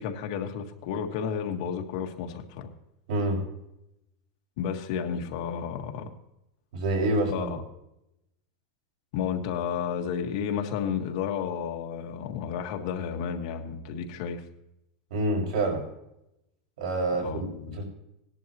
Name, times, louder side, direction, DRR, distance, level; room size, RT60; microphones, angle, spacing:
voice 1, 0.0-2.7 4.6-6.1 7.3-7.6 9.1-14.4 17.2-17.8, left 7 dB, 50° left, 3 dB, 1.6 m, -32 dB
voice 2, 3.1-3.4 6.7-7.6 15.1-15.8 16.8-17.8, right 2 dB, 80° right, 1 dB, 6.1 m, -27 dB
18.5 x 11.0 x 3.0 m, 0.85 s
supercardioid pair, 175°, 4 cm